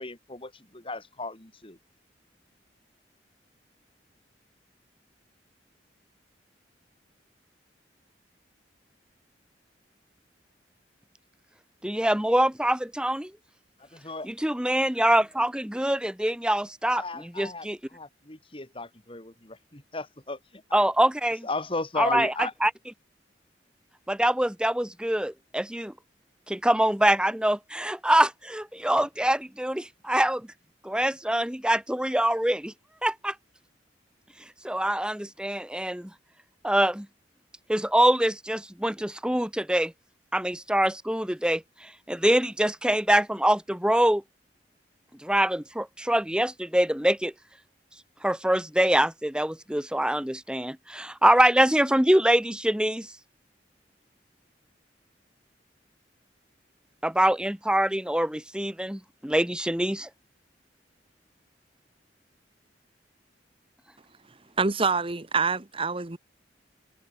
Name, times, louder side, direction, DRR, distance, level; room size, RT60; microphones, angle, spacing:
voice 1, 0.0-1.8 13.8-14.3 16.9-20.6 21.4-22.5, left 3 dB, 30° left, 2.8 m, -35 dB
voice 2, 11.8-13.3 14.3-17.0 17.4-17.8 20.7-21.5 22.0-22.3 22.6-22.7 24.1-25.9 26.5-30.5 30.8-32.7 33.0-33.3 34.6-36.1 36.6-37.1 37.7-39.9 40.3-44.2 45.2-47.3 48.2-53.1 57.0-60.1, right 1 dB, 5° right, 1.1 m, -24 dB
voice 3, 64.6-66.2, right 4 dB, 30° right, 1.1 m, -26 dB
head